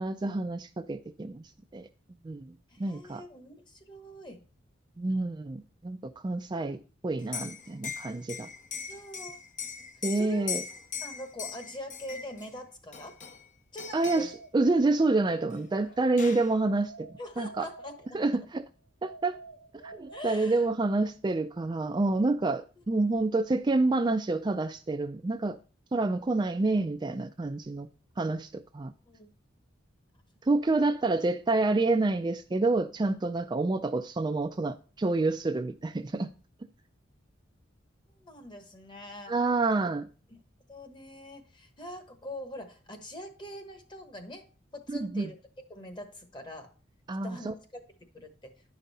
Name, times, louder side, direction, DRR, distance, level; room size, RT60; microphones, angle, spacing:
voice 1, 0.0-1.4 1.7-1.9 2.2-2.5 2.8-3.2 5.0-6.8 7.0-8.5 10.0-10.6 13.9-17.1 17.4-17.7 18.1-18.6 19.0-19.4 19.8-25.6 25.9-27.9 28.2-28.9 30.5-36.3 39.3-40.1 44.9-45.3 47.1-47.5, right 3 dB, 25° right, 0.4 m, -28 dB
voice 2, 2.7-4.4 8.9-9.4 10.1-10.5 11.0-13.2 13.7-14.3 17.2-18.2 20.1-20.7 23.0-23.3 29.1-29.3 38.2-39.3 40.3-40.4 40.7-44.5 44.7-45.3 45.7-46.7 47.2-47.5 48.1-48.5, left 1 dB, 25° left, 1.2 m, -43 dB
Liquid, 7.2-12.5 12.9-13.5 13.8-14.4 15.5-15.6 15.9-16.5, left 7 dB, 40° left, 0.7 m, -39 dB
sound 1, 14.3-16.1 16.6-18.5 19.0-20.9, right 3 dB, 65° left, 1.5 m, -50 dB
10.5 x 5.3 x 4.1 m
head